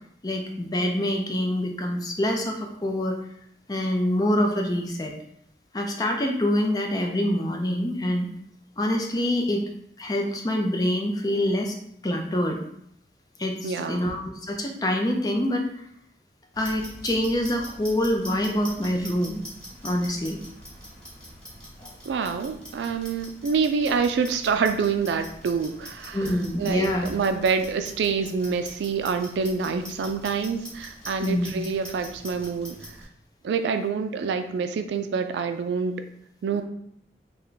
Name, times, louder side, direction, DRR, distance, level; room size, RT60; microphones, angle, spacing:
voice 1, 0.2-3.2 3.7-5.1 5.7-8.3 8.8-9.7 10.0-11.8 12.0-12.6 13.4-15.6 16.6-19.4 19.8-20.4 21.8-21.9 26.1-27.1 31.2-31.5, left 1 dB, 20° left, 2 dB, 0.4 m, -25 dB
voice 2, 13.6-14.1 22.1-26.3 26.6-32.9 33.4-35.9 36.4-36.6, right 5 dB, 80° right, 8 dB, 0.3 m, -26 dB
Clock, 16.5-33.0, equal, 5° left, 0.9 m, -43 dB
3.3 x 2.1 x 3.8 m, 0.72 s
head